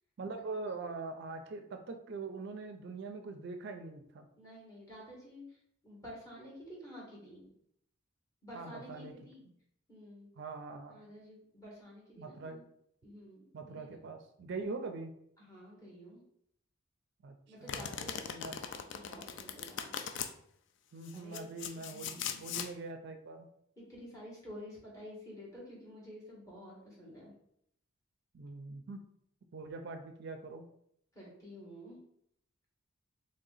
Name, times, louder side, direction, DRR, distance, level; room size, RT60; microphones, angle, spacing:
voice 1, 0.2-4.3 8.5-9.2 10.4-11.1 12.2-12.6 13.5-15.1 17.2-18.6 20.9-23.5 28.3-29.0 29.5-30.6, right 3 dB, 60° right, 6 dB, 0.4 m, -43 dB
voice 2, 4.4-5.6 5.8-7.5 8.4-9.4 9.9-10.3 10.9-12.6 13.0-14.1 15.4-16.2 17.5-20.0 21.1-22.4 23.8-27.3 31.1-32.0, equal, 15° left, -6 dB, 1.5 m, -50 dB
Domestic sounds home sounds, 17.7-20.3 21.1-22.7, left 8 dB, 60° left, 0.3 m, -40 dB
3.2 x 2.8 x 3.9 m, 0.70 s
head